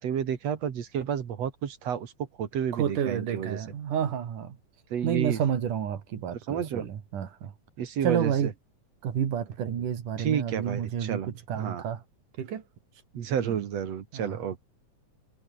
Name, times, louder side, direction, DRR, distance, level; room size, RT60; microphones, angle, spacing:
voice 1, 0.0-2.1 2.4-3.6 4.9-5.4 6.5-6.8 7.8-8.5 10.2-11.3 11.6-11.8 13.1-14.6, right 8 dB, 55° right, 2.9 m, -30 dB
voice 2, 2.7-4.6 5.0-7.5 8.0-8.5 9.0-12.0 12.4-12.6 13.4-13.6 14.1-14.4, right 8 dB, 80° right, 3.9 m, -30 dB
omnidirectional pair, 3.6 m